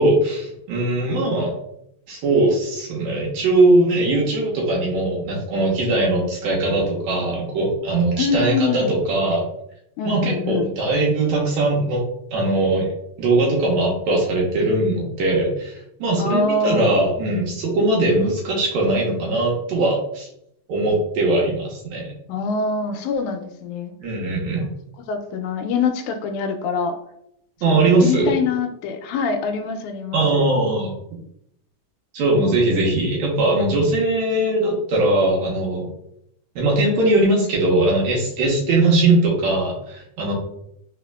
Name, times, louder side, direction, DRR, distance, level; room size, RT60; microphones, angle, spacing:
voice 1, 0.0-1.5 2.1-9.4 10.0-12.0 12.3-12.9 13.2-20.3 20.7-22.1 24.0-24.7 27.6-28.3 30.1-30.9 32.1-35.9 36.6-40.3, right 2 dB, 75° right, -2 dB, 2.2 m, -20 dB
voice 2, 8.2-8.9 10.0-10.7 16.2-17.0 22.3-23.9 24.6-24.7 25.0-27.0 27.7-30.4, left 4 dB, 80° left, 7 dB, 1.9 m, -24 dB
4.1 x 4.1 x 2.2 m, 0.77 s
omnidirectional pair, 3.5 m